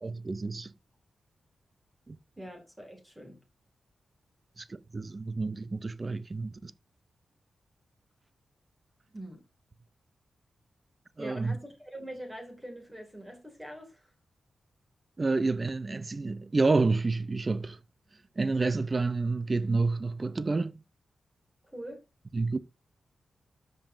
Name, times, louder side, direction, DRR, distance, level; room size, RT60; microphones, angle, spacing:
voice 1, 0.0-0.7 2.1-2.2 4.6-6.7 11.2-11.6 15.2-17.8 18.4-20.8 22.3-22.6, right 3 dB, 25° right, 0.6 m, -29 dB
voice 2, 2.4-3.4 9.1-9.4 11.2-14.1 21.6-22.0, right 1 dB, 10° right, 2.2 m, -43 dB
13.0 x 5.4 x 2.6 m
wide cardioid pair, 170°, 0 cm